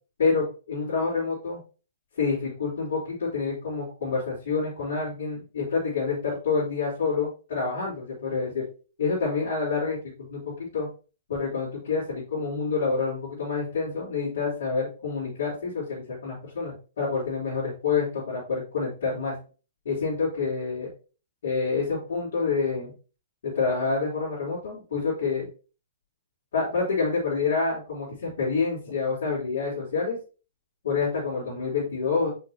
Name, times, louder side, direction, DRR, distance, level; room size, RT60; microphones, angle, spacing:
voice 1, 0.2-1.6 2.2-8.7 9.0-10.9 11.3-19.3 19.8-20.9 21.4-22.9 23.4-25.5 26.5-30.2 30.8-32.3, left 4 dB, 65° left, -9 dB, 3.9 m, -27 dB
6.3 x 5.8 x 3.0 m, 0.35 s
figure-of-eight pair, 115°, 0 cm